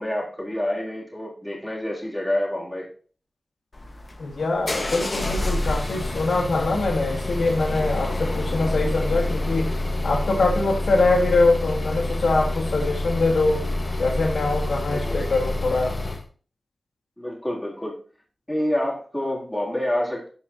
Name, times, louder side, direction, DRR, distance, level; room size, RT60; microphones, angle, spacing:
voice 1, 0.0-2.9 14.9-15.2 17.2-18.0 18.5-20.3, left 1 dB, 10° left, -3 dB, 3.5 m, -27 dB
Car starting recorded from garage, 3.7-16.3, left 1 dB, 35° left, 1.4 m, -27 dB
voice 2, 4.2-9.7 10.0-13.7 14.0-16.0, left 3 dB, 85° left, 1 dB, 1.8 m, -23 dB
13.5 x 5.2 x 2.8 m, 0.40 s
wide cardioid pair, 85°, 0 cm